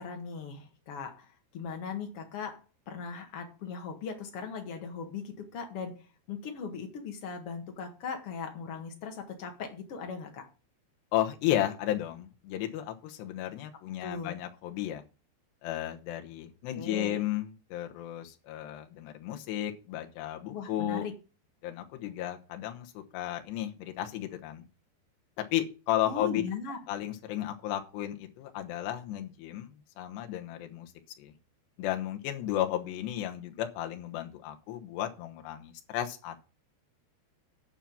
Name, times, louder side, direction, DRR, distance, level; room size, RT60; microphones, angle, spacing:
voice 1, 0.0-10.5 14.0-14.3 16.7-17.3 20.5-21.1 26.0-26.8, left 5 dB, 55° left, 1.7 m, -39 dB
voice 2, 11.1-15.0 15.6-21.0 21.6-24.7 25.4-26.4 26.9-30.9 31.2-31.3 31.8-36.4, left 12 dB, 75° left, 3.2 m, -34 dB
10.0 x 5.8 x 7.1 m
omnidirectional pair, 5.0 m